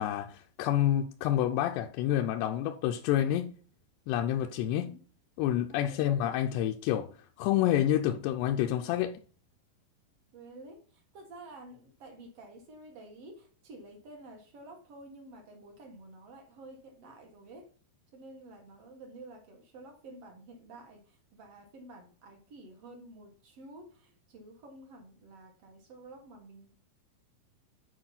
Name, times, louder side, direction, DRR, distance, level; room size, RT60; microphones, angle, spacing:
voice 1, 0.0-3.5 4.1-4.9 5.4-7.1 7.4-9.2, left 11 dB, 90° left, 2.7 m, -28 dB
voice 2, 5.6-6.1 10.3-17.7 18.1-26.7, right 2 dB, 60° right, 1.6 m, -50 dB
8.9 x 4.5 x 5.7 m
omnidirectional pair, 4.7 m